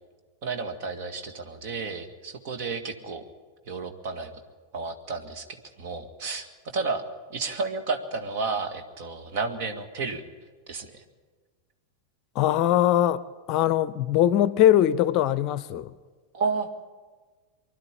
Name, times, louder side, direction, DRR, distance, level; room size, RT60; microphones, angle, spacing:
voice 1, 0.4-3.2 3.7-4.4 4.7-5.5 5.8-7.0 7.3-10.2 10.7-11.0 16.3-16.9, right 4 dB, 45° right, 2.0 m, -32 dB
voice 2, 12.3-13.2 13.5-15.9, left 12 dB, 40° left, 0.6 m, -21 dB
24.5 x 12.0 x 10.0 m
figure-of-eight pair, 90°, 0 cm